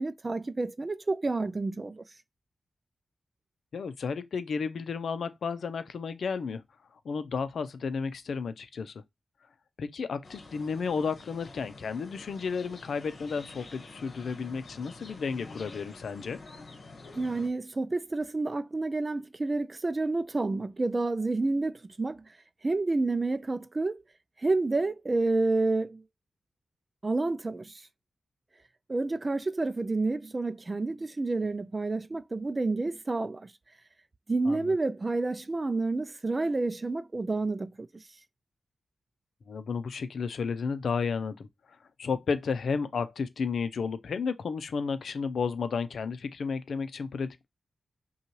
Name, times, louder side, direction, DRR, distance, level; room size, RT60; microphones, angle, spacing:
voice 1, 0.0-2.0 17.1-22.2 22.6-24.0 24.4-26.0 27.0-27.7 28.9-33.5 34.3-38.0, right 3 dB, 25° right, 0.4 m, -29 dB
voice 2, 3.7-6.6 7.0-9.0 9.8-16.4 34.5-34.8 39.5-41.5 42.0-47.5, left 5 dB, 70° left, 0.6 m, -32 dB
sound 1, 10.2-17.5, left 3 dB, 50° left, 1.4 m, -48 dB
5.6 x 2.3 x 3.1 m
wide cardioid pair, 115°, 0 cm